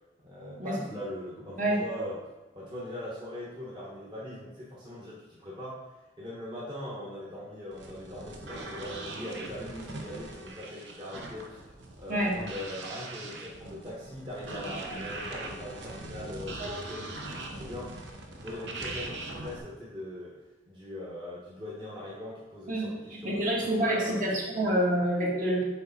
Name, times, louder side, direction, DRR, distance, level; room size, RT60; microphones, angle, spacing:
voice 1, 0.2-2.2 2.5-5.8 6.2-17.9 18.4-20.3 20.7-24.3, left 1 dB, 25° right, -7 dB, 1.1 m, -41 dB
sound 1, 7.7-19.6, right 2 dB, 85° right, 0.9 m, -41 dB
voice 2, 23.1-25.7, right 1 dB, 50° right, -3 dB, 1.5 m, -27 dB
6.5 x 4.1 x 4.1 m, 1.1 s
head